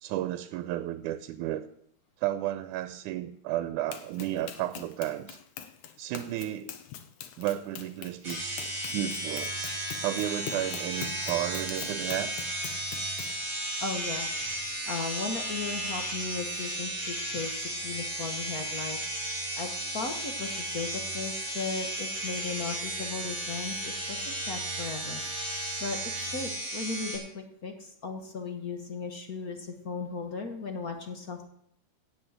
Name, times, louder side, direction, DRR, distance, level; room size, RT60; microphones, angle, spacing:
voice 1, 0.0-1.7 2.2-5.4 6.0-6.7 7.4-9.5 10.0-12.6, right 13 dB, 90° right, 12 dB, 2.1 m, -33 dB
Run, 3.9-13.4, left 9 dB, 80° left, 2.5 m, -44 dB
sound 1, 8.2-27.2, right 1 dB, 25° right, 6.4 m, -34 dB
voice 2, 13.8-14.3 14.9-19.0 19.6-25.2 25.8-31.5, left 4 dB, 60° left, 5 dB, 0.9 m, -36 dB
17.0 x 6.1 x 7.9 m, 0.72 s
omnidirectional pair, 3.5 m